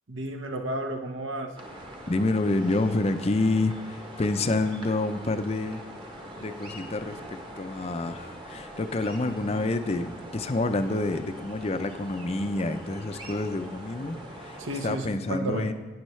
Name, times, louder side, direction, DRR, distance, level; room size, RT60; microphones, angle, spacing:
voice 1, 0.1-1.6 14.6-15.7, right 1 dB, 80° right, 4 dB, 1.1 m, -32 dB
sound 1, 1.6-15.0, equal, 25° right, 1.1 m, -43 dB
voice 2, 2.1-5.8 6.4-15.7, left 2 dB, 30° left, 9 dB, 0.5 m, -28 dB
12.0 x 9.6 x 3.2 m, 1.2 s
head